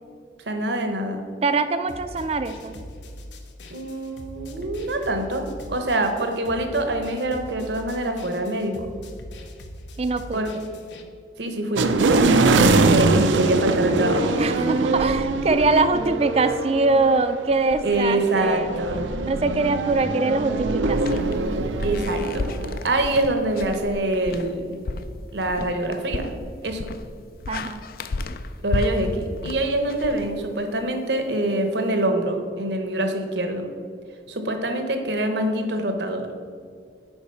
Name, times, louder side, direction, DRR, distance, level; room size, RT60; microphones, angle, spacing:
voice 1, 0.5-1.2 3.7-8.9 10.3-10.5 11.4-11.9 12.6-14.8 17.8-19.0 21.8-22.4 22.8-24.8 25.3-26.3 26.6-26.9 28.6-33.7 34.3-36.3, right 1 dB, 70° right, 6 dB, 0.9 m, -25 dB
voice 2, 1.4-2.8 10.0-10.4 14.4-18.7 19.3-21.4 27.5-27.8, right 3 dB, 35° right, 10 dB, 0.4 m, -23 dB
sound 1, 1.9-11.0, left 1 dB, 75° left, 0.8 m, -41 dB
sound 2, 11.8-22.8, right 3 dB, 90° right, 0.5 m, -23 dB
sound 3, 21.0-30.9, left 3 dB, 50° left, 0.3 m, -33 dB
7.2 x 4.8 x 5.4 m, 2.2 s
head